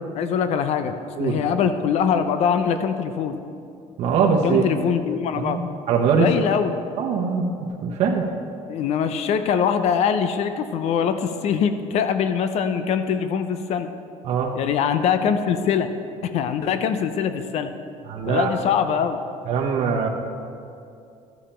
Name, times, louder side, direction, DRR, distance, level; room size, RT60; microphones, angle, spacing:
voice 1, 0.2-3.4 4.4-5.6 6.2-6.8 8.7-13.9 14.5-15.9 16.2-17.7 18.3-19.2, left 7 dB, 55° left, 9 dB, 0.5 m, -23 dB
voice 2, 4.0-4.6 5.3-5.6 5.9-6.3 7.0-7.5 7.8-8.3 14.2-14.5 18.1-18.5 19.5-20.1, right 6 dB, 55° right, -1 dB, 0.9 m, -21 dB
12.5 x 7.1 x 4.4 m, 2.5 s
cardioid pair, 145°, 13 cm